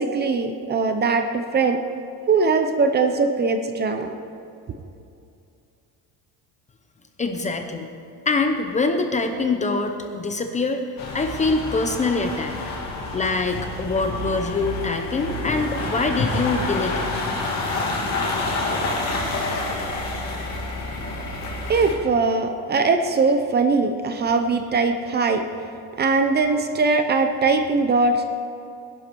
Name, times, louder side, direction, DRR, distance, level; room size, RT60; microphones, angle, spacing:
voice 1, 0.0-1.8 2.3-4.1 21.7-25.4 26.0-28.2, right 4 dB, 25° right, 6 dB, 0.7 m, -21 dB
voice 2, 7.2-7.9 8.3-10.8 11.1-12.6 13.1-17.1, left 3 dB, 20° left, 5 dB, 0.6 m, -24 dB
sound 1, 11.0-22.0, left 2 dB, 40° left, 2.9 m, -28 dB
20.5 x 11.5 x 4.6 m, 2.6 s
cardioid pair, 170°, 41 cm